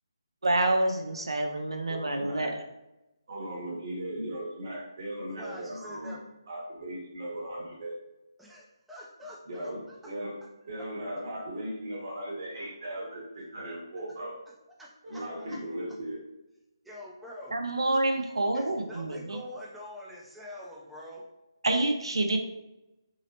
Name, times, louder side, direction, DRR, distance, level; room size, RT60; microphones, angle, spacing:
voice 1, 0.4-2.6 17.5-19.4 21.6-22.4, right 2 dB, 85° right, 4 dB, 0.5 m, -27 dB
voice 2, 1.9-2.6 3.3-8.0 9.5-10.4 10.7-14.4 15.0-16.2, right 1 dB, 50° right, -2 dB, 1.0 m, -38 dB
voice 3, 5.3-6.2 8.4-10.0 10.8-10.9 14.8-15.2 15.5-15.6 16.8-17.6 18.5-21.3, left 1 dB, ahead, -5 dB, 0.4 m, -45 dB
2.8 x 2.0 x 2.8 m, 0.96 s
figure-of-eight pair, 155°, 3 cm